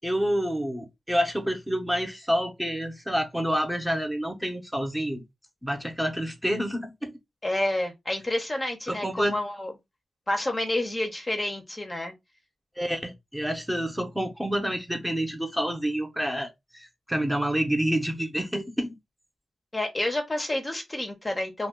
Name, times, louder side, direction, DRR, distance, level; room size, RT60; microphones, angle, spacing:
voice 1, 0.0-5.2 5.6-7.1 8.9-9.4 12.8-16.5 16.7-18.9, equal, 5° right, 0.8 m, -28 dB
voice 2, 7.4-9.7 10.3-12.1 19.7-21.7, left 1 dB, 25° left, 0.7 m, -29 dB
2.3 x 2.2 x 3.6 m
cardioid pair, 60°, 0 cm